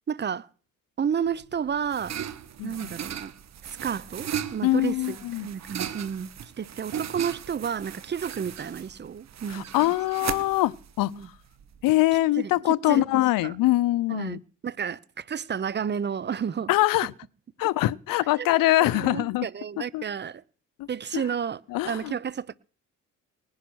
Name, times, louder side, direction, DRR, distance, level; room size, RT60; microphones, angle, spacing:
voice 1, 0.1-0.5 1.0-2.2 2.6-3.3 3.7-9.9 11.0-11.3 12.4-13.6 14.1-16.7 18.4-18.5 18.9-20.4 20.9-22.5, right 7 dB, 30° right, 0.7 m, -31 dB
sound 1, 1.3-11.9, right 9 dB, 55° right, 1.2 m, -37 dB
voice 2, 2.6-2.9 4.6-5.5 9.5-11.1 11.8-14.4 16.7-17.1 17.6-19.5 19.9-20.0 20.8-20.9 21.1-21.2 21.7-22.1, left 17 dB, 85° left, 0.7 m, -23 dB
19.5 x 10.5 x 6.3 m
cardioid pair, 90°, 33 cm